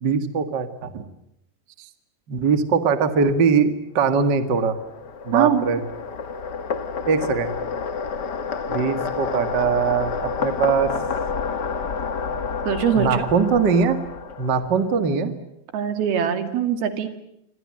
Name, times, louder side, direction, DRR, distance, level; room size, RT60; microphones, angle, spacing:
voice 1, 0.0-1.0 2.3-4.8 5.2-5.8 7.1-7.5 8.7-10.1 10.4-10.9 13.0-14.0 14.4-15.3, right 5 dB, 40° right, 10 dB, 1.8 m, -21 dB
sound 1, 4.3-15.0, left 5 dB, 65° left, 1.0 m, -29 dB
voice 2, 5.3-5.7 12.7-13.3 15.7-17.1, right 8 dB, 75° right, 9 dB, 4.2 m, -22 dB
27.5 x 25.5 x 7.6 m, 0.81 s
omnidirectional pair, 4.4 m